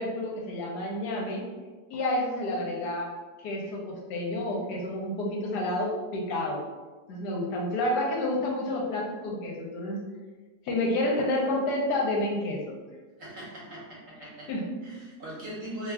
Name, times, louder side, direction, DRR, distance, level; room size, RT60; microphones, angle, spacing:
voice 1, 0.0-1.4 1.9-3.1 3.4-6.6 7.1-10.0 10.7-12.8 14.5-14.6, left 1 dB, 75° left, -2 dB, 1.2 m, -29 dB
voice 2, 13.2-14.6 14.8-15.9, right 1 dB, 55° right, -6 dB, 1.2 m, -40 dB
2.9 x 2.4 x 3.4 m, 1.3 s
omnidirectional pair, 1.8 m